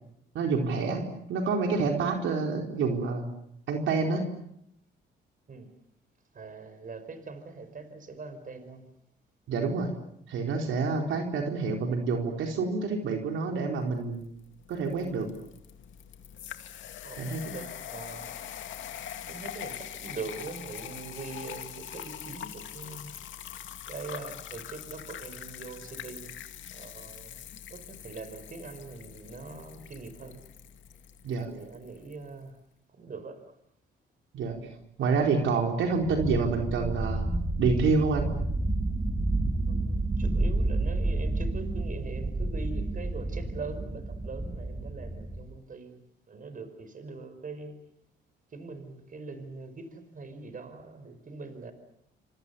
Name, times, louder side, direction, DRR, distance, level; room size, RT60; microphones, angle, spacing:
voice 1, 0.3-3.3 3.7-4.3 9.5-9.9 10.3-14.2 14.7-15.3 17.2-17.5 31.2-31.5 34.3-37.2 37.6-38.3, right 4 dB, 75° right, 3 dB, 4.3 m, -28 dB
voice 2, 6.3-8.8 17.0-18.4 19.3-23.1 23.9-26.3 26.7-27.3 27.7-30.4 31.5-32.6 33.0-33.4 39.7-46.0 46.3-47.8 48.5-51.7, right 4 dB, 45° right, 11 dB, 5.2 m, -42 dB
sound 1, 14.2-32.2, left 10 dB, 75° left, 2.2 m, -43 dB
sound 2, 36.0-45.4, right 2 dB, 20° right, 3.1 m, -30 dB
28.0 x 26.0 x 7.1 m, 0.74 s
cardioid pair, 90°, 20 cm